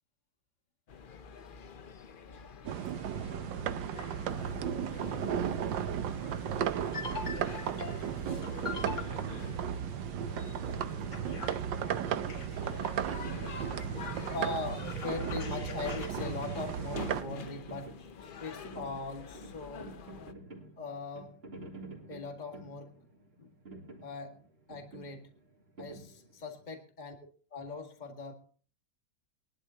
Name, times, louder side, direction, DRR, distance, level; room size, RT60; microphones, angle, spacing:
sound 1, 0.9-20.3, left 6 dB, 70° left, 0.4 m, -47 dB
sound 2, 2.7-17.2, right 9 dB, 85° right, 1.5 m, -35 dB
voice 1, 6.4-9.1 11.1-17.9 18.4-20.2 20.8-21.3 22.1-23.1 23.4-23.5 24.0-24.3 24.7-25.2 25.8-27.2 27.5-28.3, left 3 dB, 25° left, 3 dB, 1.9 m, -41 dB
sound 3, 10.9-26.6, right 2 dB, 30° right, 2.9 m, -50 dB
21.5 x 12.0 x 2.8 m, 0.41 s
omnidirectional pair, 1.9 m